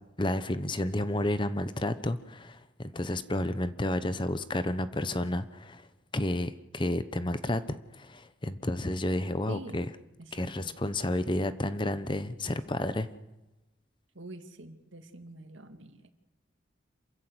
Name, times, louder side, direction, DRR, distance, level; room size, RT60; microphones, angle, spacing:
voice 1, 0.2-5.9 6.1-9.9 10.3-13.1, left 1 dB, 25° left, 12 dB, 0.9 m, -31 dB
voice 2, 9.5-9.8 10.4-10.5 14.2-16.1, right 1 dB, 85° right, 7 dB, 2.2 m, -44 dB
27.0 x 15.0 x 8.1 m, 1.1 s
head